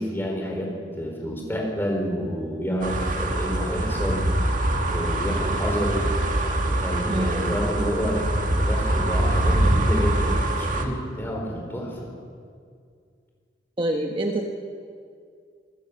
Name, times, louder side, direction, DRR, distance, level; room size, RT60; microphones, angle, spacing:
voice 1, 0.0-4.3 4.9-6.1 6.7-8.2 8.5-12.1, equal, 10° left, 0 dB, 4.8 m, -29 dB
sound 1, 2.8-10.9, right 1 dB, 45° right, 1.8 m, -24 dB
voice 2, 7.1-7.6 13.8-14.5, right 1 dB, 30° right, 2 dB, 1.4 m, -26 dB
26.5 x 15.5 x 7.2 m, 2.2 s
head